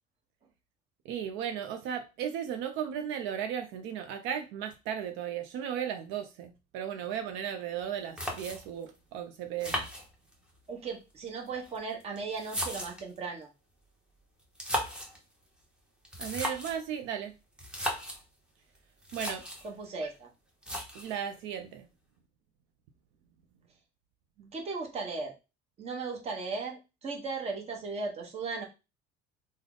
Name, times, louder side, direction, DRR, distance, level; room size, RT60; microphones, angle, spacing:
voice 1, 1.1-9.9 16.2-17.4 19.1-19.4 20.9-21.9 24.4-24.5, right 9 dB, 75° right, 0.4 m, -35 dB
sound 1, 7.8-7.9 8.2-8.8 9.6-10.6 11.5-13.2 14.4-15.2 16.0-16.8 17.6-18.2 18.8-18.9 19.0-19.7 20.6-21.2, equal, 5° right, 0.7 m, -36 dB
voice 2, 10.7-13.5 19.6-20.3 24.5-25.4 25.8-28.6, right 4 dB, 30° right, 0.9 m, -37 dB
3.4 x 2.0 x 3.7 m
cardioid pair, 145°, 20 cm